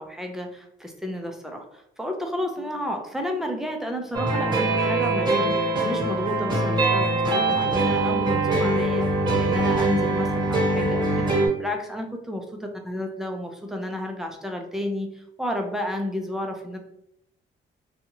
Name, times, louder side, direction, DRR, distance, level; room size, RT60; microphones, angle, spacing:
voice 1, 0.0-11.3 11.6-16.8, left 1 dB, ahead, 2 dB, 0.5 m, -31 dB
sound 1, 4.1-11.5, right 2 dB, 20° right, 1.0 m, -23 dB
2.7 x 2.3 x 2.8 m, 0.77 s
cardioid pair, 90°, 20 cm